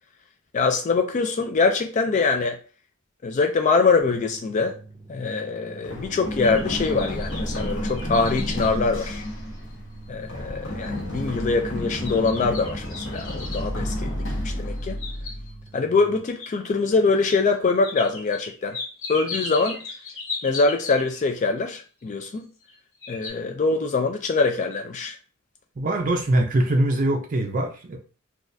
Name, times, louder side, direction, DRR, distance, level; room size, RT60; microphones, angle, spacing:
voice 1, 0.5-2.6 3.2-4.7 5.1-9.2 10.1-15.0 15.7-18.8 19.1-19.8 20.4-22.5 23.1-25.2, left 4 dB, 35° left, 0.3 m, -23 dB
sound 1, 4.0-16.2, right 3 dB, 10° right, 0.8 m, -46 dB
Run, 5.8-15.6, left 1 dB, 65° left, 1.1 m, -31 dB
sound 2, 6.4-9.7 10.2-10.3 10.8-11.2 12.0-13.7 14.7-15.7 16.4-16.5 17.3-17.4 17.8-21.3 22.3-22.7 23.0-23.3, left 3 dB, 90° left, 1.1 m, -37 dB
voice 2, 25.8-28.0, right 1 dB, 40° right, 0.4 m, -22 dB
3.9 x 2.3 x 2.6 m
head